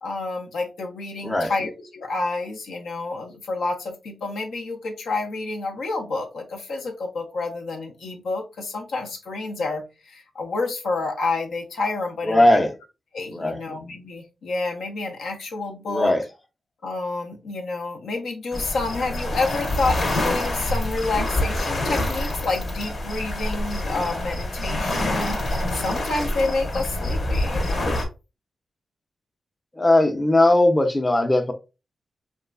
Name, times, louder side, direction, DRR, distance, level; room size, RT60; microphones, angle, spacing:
voice 1, 0.0-12.6 13.1-16.1 16.8-28.0, left 3 dB, 85° left, 0.6 m, -29 dB
voice 2, 12.2-12.7 13.3-13.6 15.9-16.2 29.7-31.5, left 1 dB, 25° left, 0.6 m, -18 dB
sound 1, 18.5-28.0, left 1 dB, 65° left, 0.9 m, -26 dB
2.9 x 2.3 x 2.4 m
cardioid pair, 50°, 0 cm